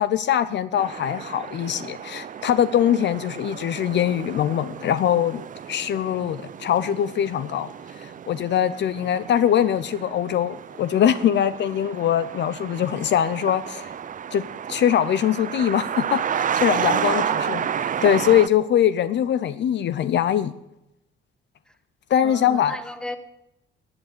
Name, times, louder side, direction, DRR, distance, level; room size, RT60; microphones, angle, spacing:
voice 1, 0.0-5.4 5.7-7.7 8.0-13.9 14.3-14.4 14.7-20.5 22.1-22.8, left 10 dB, 65° left, 15 dB, 0.6 m, -22 dB
sound 1, 0.8-18.5, right 8 dB, 40° right, 0.5 m, -31 dB
voice 2, 17.1-17.6 22.2-23.2, left 1 dB, 5° left, 10 dB, 1.5 m, -35 dB
14.0 x 8.9 x 6.7 m, 0.86 s
cardioid pair, 90°, 20 cm